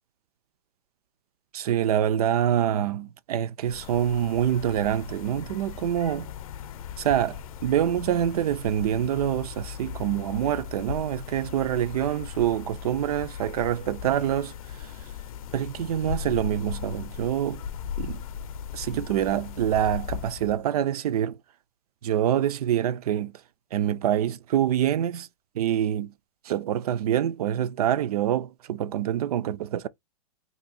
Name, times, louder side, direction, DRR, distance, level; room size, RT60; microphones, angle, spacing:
voice 1, 1.5-6.3 7.0-14.9 15.5-17.6 18.0-18.2 18.7-21.4 22.0-23.3 23.7-25.3 25.6-26.1 26.4-29.9, right 10 dB, 85° right, 0.4 m, -26 dB
sound 1, 3.6-20.6, left 8 dB, 70° left, 0.5 m, -38 dB
2.7 x 2.7 x 4.1 m
supercardioid pair, 160°, 19 cm